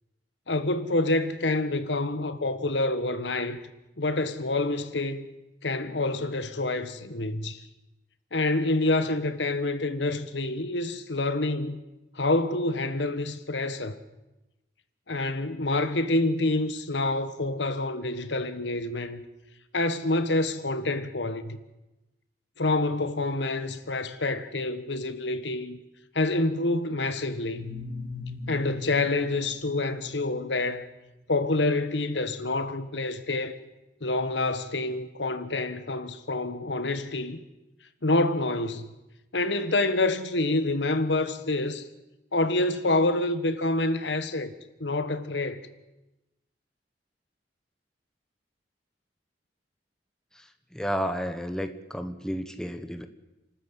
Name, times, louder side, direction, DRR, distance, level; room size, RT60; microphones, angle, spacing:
voice 1, 0.5-3.6 4.0-5.3 5.6-7.6 8.3-11.8 12.1-14.0 15.1-19.2 19.7-21.6 22.6-25.8 26.1-27.7 28.5-30.9 31.3-33.5 34.0-37.4 38.0-38.9 39.3-41.9 42.3-44.5 44.8-45.7, left 2 dB, 80° left, 1.5 m, -27 dB
sound 1, 27.4-31.1, left 3 dB, 60° left, 3.6 m, -40 dB
voice 2, 50.3-53.1, equal, 5° left, 1.2 m, -32 dB
28.5 x 13.5 x 8.4 m
head